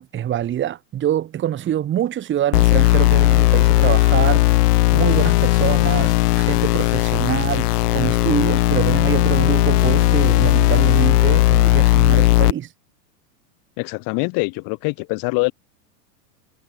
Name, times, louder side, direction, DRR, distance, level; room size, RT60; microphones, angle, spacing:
voice 1, 0.0-4.6 4.9-12.7, right 11 dB, 25° right, 1.8 m, -25 dB
sound 1, 2.5-12.5, left 19 dB, 75° left, 0.7 m, -16 dB
voice 2, 13.8-15.5, left 30 dB, 45° left, 1.8 m, -24 dB
supercardioid pair, 130°, 47 cm